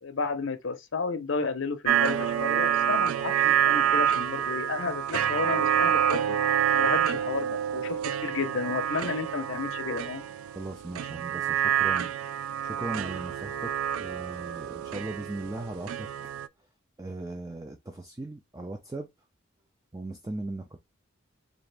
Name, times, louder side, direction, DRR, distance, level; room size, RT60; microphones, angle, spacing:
voice 1, 0.0-6.4 6.7-10.2, left 4 dB, 70° left, 0.6 m, -32 dB
sound 1, 1.8-16.5, right 9 dB, 90° right, 0.3 m, -27 dB
voice 2, 10.5-12.1 12.6-13.7 14.0-16.1 17.0-19.1 19.9-20.8, right 2 dB, 15° right, 0.4 m, -38 dB
4.0 x 2.5 x 3.3 m
head